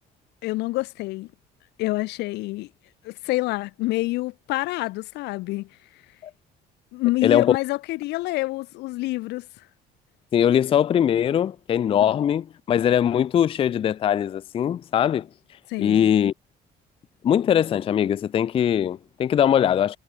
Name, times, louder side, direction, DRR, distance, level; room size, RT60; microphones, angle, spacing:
voice 1, 0.4-1.3 1.8-2.7 3.0-5.7 6.9-9.6 12.1-12.2 15.7-16.1, left 20 dB, 85° left, 0.7 m, -27 dB
voice 2, 7.2-7.5 10.3-15.3 15.8-16.3 17.2-20.0, left 9 dB, 35° left, 0.3 m, -21 dB
cardioid pair, 110°, 17 cm